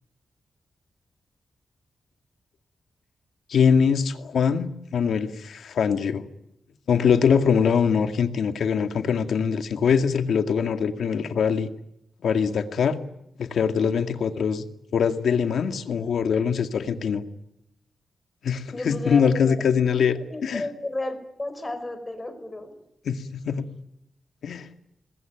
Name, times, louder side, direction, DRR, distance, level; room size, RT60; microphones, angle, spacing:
voice 1, 3.5-6.2 6.9-11.7 12.2-13.0 13.4-14.7 14.9-17.2 18.4-20.6 23.1-23.2 23.4-23.6 24.4-24.7, left 6 dB, 80° left, 8 dB, 2.2 m, -23 dB
voice 2, 18.7-19.6 20.3-22.7, left 2 dB, 20° left, 8 dB, 5.1 m, -33 dB
27.0 x 20.5 x 9.3 m, 0.81 s
wide cardioid pair, 120°, 0 cm